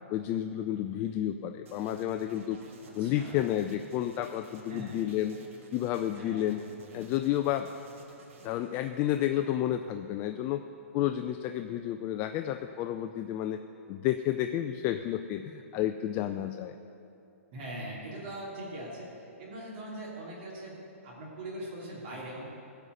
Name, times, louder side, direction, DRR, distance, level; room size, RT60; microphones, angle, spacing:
voice 1, 0.1-2.6 2.9-5.4 5.7-6.6 6.9-7.7 8.4-10.6 10.9-13.6 13.9-16.7, left 12 dB, 25° left, 8 dB, 0.4 m, -31 dB
sound 1, 1.7-9.7, right 3 dB, 65° right, 1.7 m, -54 dB
voice 2, 3.0-3.4 4.7-5.0 6.2-6.5 17.5-22.4, right 1 dB, 45° right, -6 dB, 3.1 m, -41 dB
16.0 x 5.6 x 8.0 m, 2.8 s
hypercardioid pair, 140°, 8 cm